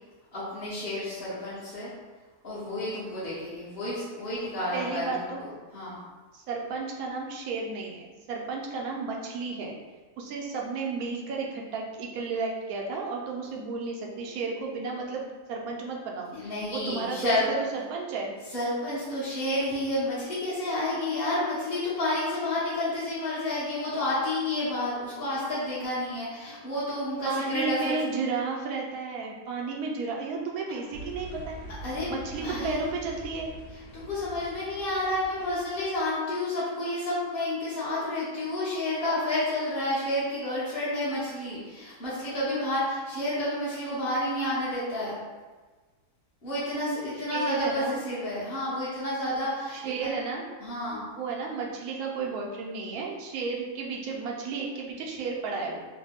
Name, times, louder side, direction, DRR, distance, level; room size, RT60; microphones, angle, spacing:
voice 1, 0.3-1.9 2.4-5.1 5.4-6.0 16.3-17.5 18.5-28.0 31.8-32.9 33.9-45.2 46.4-50.1 50.6-51.0, left 1 dB, 40° left, -12 dB, 1.1 m, -30 dB
voice 2, 4.7-5.4 6.3-9.7 10.2-18.3 27.2-31.6 32.1-33.5 47.3-48.0 49.7-50.4 51.1-55.8, right 4 dB, 70° right, -1 dB, 1.0 m, -33 dB
sound 1, 30.9-36.0, right 1 dB, 85° left, 1.2 m, -44 dB
3.1 x 2.1 x 3.4 m, 1.3 s
omnidirectional pair, 1.7 m